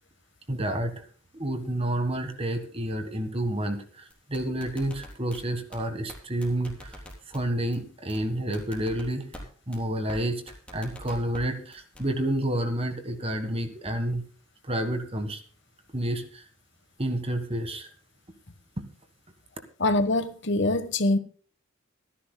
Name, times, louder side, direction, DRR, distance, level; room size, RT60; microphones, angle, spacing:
voice 1, 0.5-1.0 1.3-7.0 7.3-9.2 9.7-14.2 14.6-15.4 15.9-16.4 17.0-17.9, right 1 dB, 30° right, 1.5 m, -29 dB
sound 1, 4.1-5.4 5.7-5.8 6.1-6.2 6.4-7.4 7.7-7.8 8.1-8.2 8.5-9.4 9.7-9.8 10.1-10.2 10.5-11.4 11.7-12.0, left 1 dB, 5° left, 3.8 m, -43 dB
voice 2, 19.8-21.2, left 2 dB, 60° left, 1.2 m, -24 dB
25.5 x 10.5 x 2.2 m
head